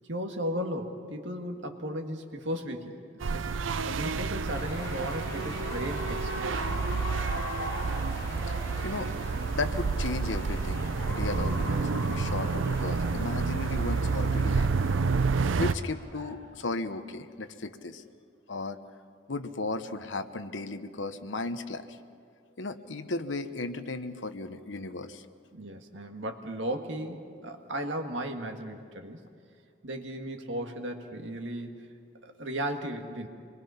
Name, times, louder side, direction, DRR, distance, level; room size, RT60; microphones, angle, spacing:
voice 1, 0.1-6.9 25.5-29.2 29.8-31.9 32.2-33.3, equal, 70° right, 4 dB, 1.9 m, -36 dB
sound 1, 3.2-15.7, right 4 dB, 85° right, 0.6 m, -29 dB
sound 2, 4.5-16.3, left 1 dB, 20° left, 5.0 m, -41 dB
voice 2, 9.5-14.9 15.6-18.0 18.5-18.8 19.3-22.0 22.6-25.2, left 3 dB, 70° left, 10 dB, 1.0 m, -35 dB
26.0 x 22.0 x 5.7 m, 2.3 s
head